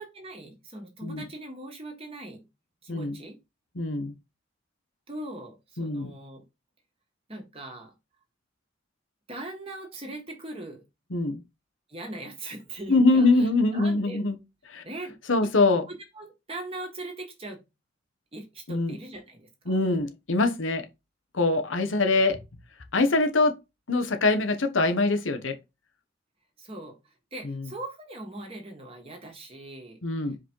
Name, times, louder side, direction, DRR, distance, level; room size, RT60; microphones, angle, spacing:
voice 1, 0.0-2.4 2.8-3.4 5.1-6.4 7.3-7.9 9.3-10.8 11.9-14.2 14.8-15.2 15.4-15.5 15.9-17.6 18.3-19.8 22.0-22.2 26.6-30.4, right 2 dB, 30° right, 1.8 m, -40 dB
voice 2, 2.9-3.2 3.8-4.1 5.8-6.1 11.1-11.4 12.9-14.4 14.7-14.8 15.3-15.8 18.7-19.0 19.7-20.8 21.3-22.4 22.9-23.6 23.9-25.6 30.0-30.4, left 3 dB, 80° left, 1.1 m, -23 dB
5.0 x 4.2 x 4.6 m
head